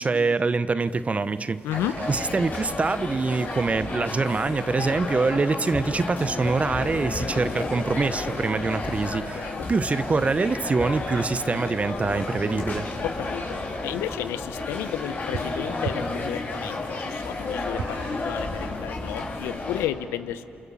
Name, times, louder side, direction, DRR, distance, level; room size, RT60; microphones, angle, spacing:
voice 1, 0.0-1.6 2.1-12.9, right 4 dB, 35° right, 14 dB, 1.0 m, -25 dB
sound 1, 0.8-19.6, right 5 dB, 80° right, 3.6 m, -45 dB
voice 2, 1.6-1.9 9.3-9.7 13.0-13.6 13.8-20.5, left 12 dB, 80° left, 13 dB, 0.9 m, -32 dB
sound 2, 1.7-19.9, left 2 dB, 50° left, 4.4 m, -32 dB
28.0 x 27.5 x 7.2 m, 2.6 s
hypercardioid pair, 50°, 4 cm